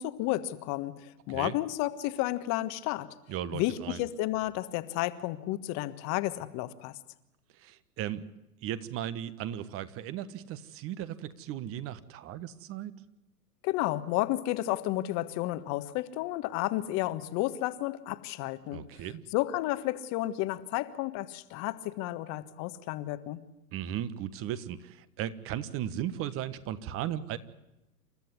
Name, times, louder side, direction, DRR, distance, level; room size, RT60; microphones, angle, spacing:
voice 1, 0.0-3.1 3.5-7.0 13.6-18.8 19.3-23.4, left 16 dB, 35° left, 12 dB, 1.5 m, -32 dB
voice 2, 3.3-4.0 7.6-8.3 8.6-12.9 18.7-19.2 23.7-27.4, right 11 dB, 30° right, 14 dB, 1.3 m, -36 dB
28.5 x 13.5 x 9.6 m, 0.93 s
hypercardioid pair, 115°, 46 cm